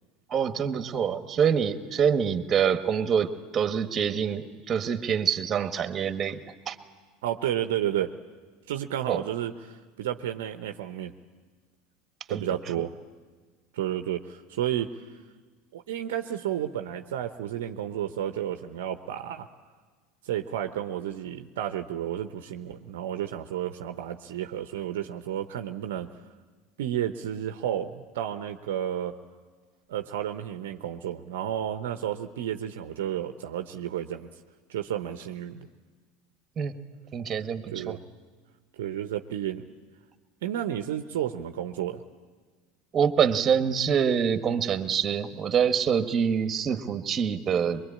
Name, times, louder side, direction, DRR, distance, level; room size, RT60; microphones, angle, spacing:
voice 1, 0.3-6.4 6.7-6.8 9.1-9.2 12.3-12.4 36.6-36.7 37.1-38.0 42.9-47.8, right 7 dB, 35° right, 9 dB, 1.4 m, -25 dB
voice 2, 7.2-8.1 8.7-11.1 12.3-12.9 13.7-14.9 15.7-19.5 20.2-26.1 26.8-29.1 29.9-34.3 34.7-35.7 37.7-38.0 38.8-39.7 40.4-42.0, right 11 dB, 70° right, 7 dB, 0.8 m, -31 dB
23.5 x 22.5 x 8.6 m, 1.5 s
hypercardioid pair, 80°, 0 cm